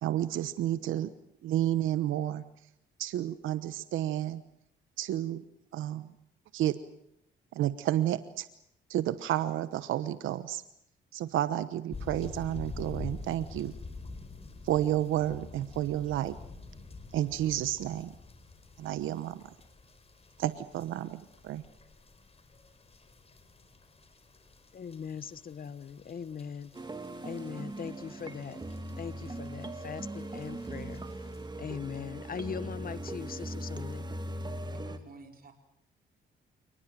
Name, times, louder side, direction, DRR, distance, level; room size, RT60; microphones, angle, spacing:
voice 1, 0.0-1.1 1.4-2.4 3.0-4.4 5.0-5.4 5.7-6.1 6.5-6.8 7.5-8.5 8.9-10.6 11.1-13.7 14.6-16.4 17.1-18.1 18.8-19.5 20.4-21.6, right 12 dB, 85° right, 13 dB, 1.1 m, -31 dB
sound 1, 11.9-31.5, left 3 dB, 30° left, 4.6 m, -48 dB
voice 2, 24.7-26.7 27.2-28.6 29.0-31.3 31.6-34.1, left 7 dB, 45° left, 16 dB, 1.2 m, -40 dB
sound 2, 26.7-35.0, right 1 dB, 20° right, 2.8 m, -40 dB
voice 3, 34.7-35.5, right 4 dB, 50° right, 5 dB, 4.9 m, -51 dB
28.5 x 19.5 x 7.7 m, 0.75 s
cardioid pair, 90°, 20 cm